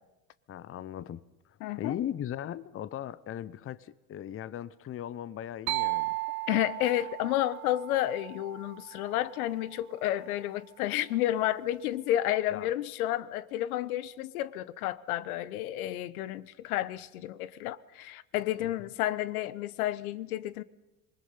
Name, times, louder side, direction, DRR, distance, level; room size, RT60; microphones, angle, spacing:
voice 1, 0.5-1.2 1.8-6.2 12.5-12.7 18.6-18.7, left 10 dB, 30° left, 0.7 m, -38 dB
voice 2, 1.6-2.0 6.5-20.6, left 14 dB, 75° left, 0.9 m, -31 dB
sound 1, 5.7-9.4, right 24 dB, 65° right, 0.6 m, -35 dB
27.0 x 20.5 x 5.6 m
hypercardioid pair, 80°, 44 cm